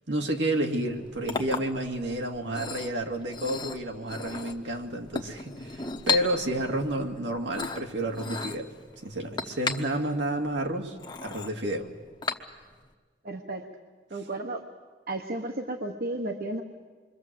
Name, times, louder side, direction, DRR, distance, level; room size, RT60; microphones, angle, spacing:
voice 1, 0.1-8.7 9.0-11.0 11.2-11.9, right 1 dB, 75° right, 3 dB, 2.4 m, -30 dB
Chink clink, 0.8-12.9, left 4 dB, 25° left, 1.1 m, -36 dB
voice 2, 13.2-13.6 14.1-14.6 15.1-16.6, right 2 dB, 55° right, 4 dB, 1.3 m, -33 dB
26.5 x 23.0 x 7.8 m, 1.5 s
head